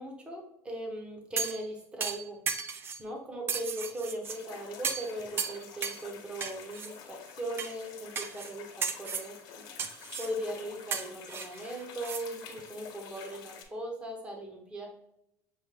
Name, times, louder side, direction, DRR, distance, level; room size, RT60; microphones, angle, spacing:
voice 1, 0.0-2.4 3.0-9.6 10.2-14.9, right 1 dB, 15° right, 0 dB, 0.9 m, -39 dB
Sword fight, 1.4-1.7 2.0-3.0 3.5-4.4 4.8-5.1 5.4-6.0 6.4-6.9 7.6-7.7 8.2-8.5 8.8-9.3 9.8-10.3 10.9-12.2 12.6-12.7, right 6 dB, 30° right, 0.4 m, -35 dB
sound 1, 4.2-13.6, left 7 dB, 65° left, 1.0 m, -49 dB
6.2 x 2.5 x 3.4 m, 0.82 s
cardioid pair, 150°, 8 cm